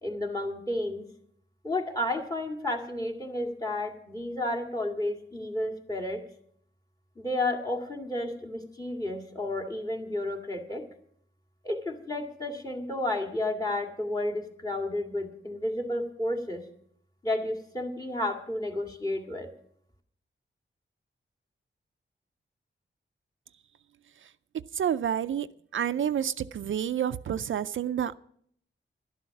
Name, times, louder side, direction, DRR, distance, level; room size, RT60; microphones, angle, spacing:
voice 1, 0.0-1.0 1.6-6.2 7.2-10.8 11.6-16.6 17.2-19.5, left 1 dB, 20° left, 2 dB, 2.1 m, -32 dB
voice 2, 24.7-25.5 25.7-28.2, right 9 dB, 75° right, 11 dB, 0.4 m, -29 dB
12.0 x 12.0 x 5.9 m, 0.64 s
wide cardioid pair, 120°, 20 cm